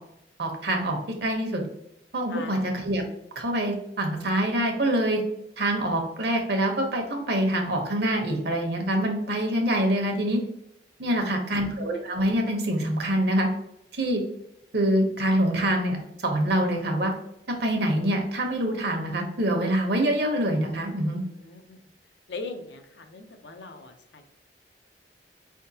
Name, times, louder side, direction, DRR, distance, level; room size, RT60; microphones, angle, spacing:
voice 1, 0.4-1.6 2.1-3.0 3.4-5.2 5.6-10.4 11.0-13.5 13.9-14.2 14.7-17.1 17.5-21.2, right 1 dB, 65° right, 2 dB, 1.0 m, -25 dB
voice 2, 2.3-2.7 11.0-11.7 20.9-21.8 22.3-24.2, left 3 dB, 75° left, 6 dB, 0.6 m, -41 dB
4.4 x 3.6 x 2.8 m, 0.80 s
head